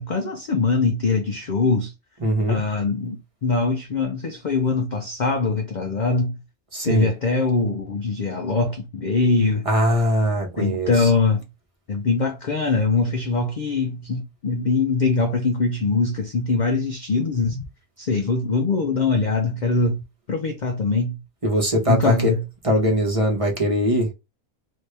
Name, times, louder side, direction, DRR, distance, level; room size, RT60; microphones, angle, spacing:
voice 1, 0.0-1.9 2.5-6.4 6.8-9.7 10.6-11.5 11.9-17.6 18.0-20.0 20.3-21.2 21.9-22.4, left 4 dB, 70° left, 0.4 m, -22 dB
voice 2, 2.2-2.6 6.7-7.1 9.6-11.1 21.4-22.3 22.6-24.1, equal, 25° right, 1.0 m, -21 dB
3.0 x 2.7 x 3.2 m
omnidirectional pair, 1.5 m